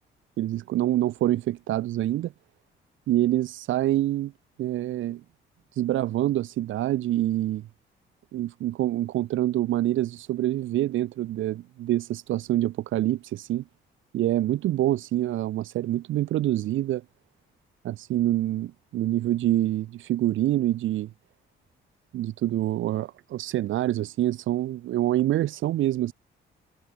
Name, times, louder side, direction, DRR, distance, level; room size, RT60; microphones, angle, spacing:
voice 1, 0.4-2.3 3.1-4.3 4.6-5.2 5.7-7.7 8.3-13.6 14.1-17.0 17.8-21.1 22.1-26.1, right 14 dB, 80° right, 1.6 m, -26 dB
cardioid pair, 90°, 20 cm